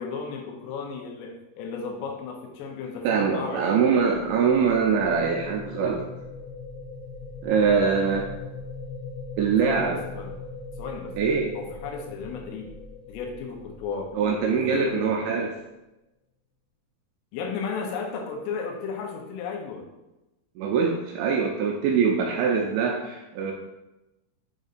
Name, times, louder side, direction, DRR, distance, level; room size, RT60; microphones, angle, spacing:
voice 1, 0.0-3.9 9.6-10.4 10.8-11.1 11.5-12.7 13.1-14.1 14.4-15.1 17.3-19.9, left 5 dB, 85° left, 1 dB, 3.5 m, -34 dB
voice 2, 3.0-6.0 7.4-8.3 9.4-10.0 11.2-11.5 14.1-15.5 20.6-23.5, right 6 dB, 85° right, 1 dB, 2.6 m, -23 dB
sound 1, 3.6-15.4, left 3 dB, 65° left, 2.7 m, -41 dB
7.9 x 5.4 x 2.6 m, 0.98 s
omnidirectional pair, 5.7 m